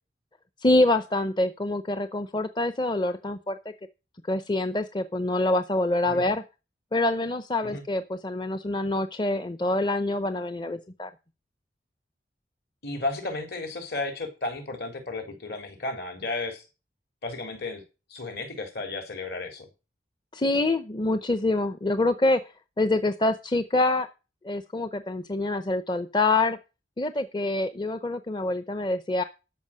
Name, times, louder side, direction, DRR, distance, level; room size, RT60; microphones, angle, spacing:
voice 1, 0.6-3.6 4.3-6.4 6.9-11.1 20.3-22.4 22.8-24.1 24.4-26.6 27.0-29.2, left 2 dB, 25° left, 11 dB, 0.6 m, -26 dB
voice 2, 12.8-16.6 17.2-17.8 18.1-19.7, left 2 dB, 60° left, 5 dB, 3.7 m, -33 dB
13.0 x 5.7 x 7.5 m, 0.30 s
head